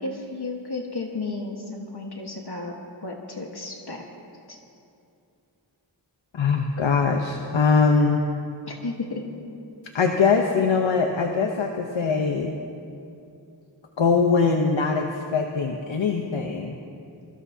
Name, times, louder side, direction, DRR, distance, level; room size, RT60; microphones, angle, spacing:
voice 1, 0.0-2.7 3.0-4.0 4.5-4.6 8.7-9.2, left 3 dB, 60° left, 0 dB, 1.4 m, -33 dB
voice 2, 6.3-8.2 9.9-12.6 14.0-16.8, left 5 dB, 80° left, 3 dB, 0.9 m, -22 dB
23.5 x 15.0 x 2.8 m, 2.6 s
wide cardioid pair, 50°, 45 cm